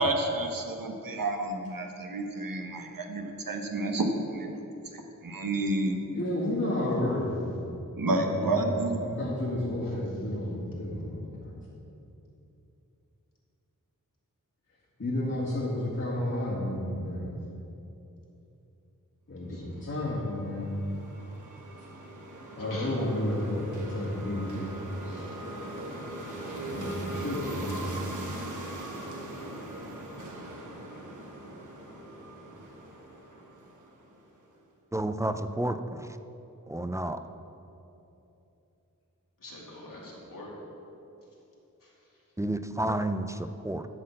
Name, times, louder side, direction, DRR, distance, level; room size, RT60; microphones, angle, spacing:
voice 1, 0.0-4.5 4.9-6.0 7.9-9.0, right 2 dB, 80° right, 3 dB, 1.1 m, -30 dB
voice 2, 6.1-7.6 8.1-11.6 15.0-17.3 19.3-20.7 22.6-24.7 26.7-28.1, left 1 dB, 50° left, -9 dB, 2.0 m, -31 dB
voice 3, 19.5-19.9 22.7-22.9 25.0-25.3 26.3-26.6 32.4-32.6 39.4-40.5 41.8-41.9, left 1 dB, 75° left, -5 dB, 2.4 m, -46 dB
sound 1, 19.9-34.3, right 1 dB, 60° right, 1.4 m, -40 dB
voice 4, 34.9-36.2 36.7-37.2 42.4-43.9, right 1 dB, 10° right, 9 dB, 0.4 m, -31 dB
11.5 x 4.3 x 7.6 m, 2.9 s
wide cardioid pair, 75°, 33 cm